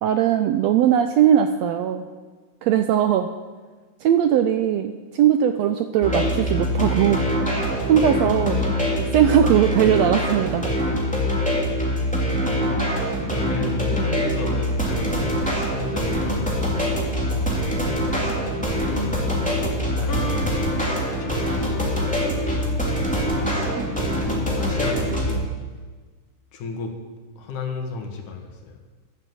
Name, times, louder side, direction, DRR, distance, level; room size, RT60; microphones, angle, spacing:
voice 1, 0.0-2.1 2.6-3.3 4.0-7.2 7.9-8.6 9.1-10.7 23.8-23.9, right 10 dB, 80° right, 8 dB, 1.5 m, -19 dB
sound 1, 6.0-25.4, equal, 5° left, 2.5 m, -24 dB
voice 2, 12.5-13.0 13.3-17.2 18.0-20.8 21.1-21.8 23.3-23.9 24.3-25.5 26.5-27.0 27.4-28.8, left 5 dB, 75° left, 3 dB, 3.2 m, -34 dB
sound 2, 20.1-25.5, left 2 dB, 50° left, 1.8 m, -37 dB
12.0 x 11.5 x 7.7 m, 1.4 s
omnidirectional pair, 3.6 m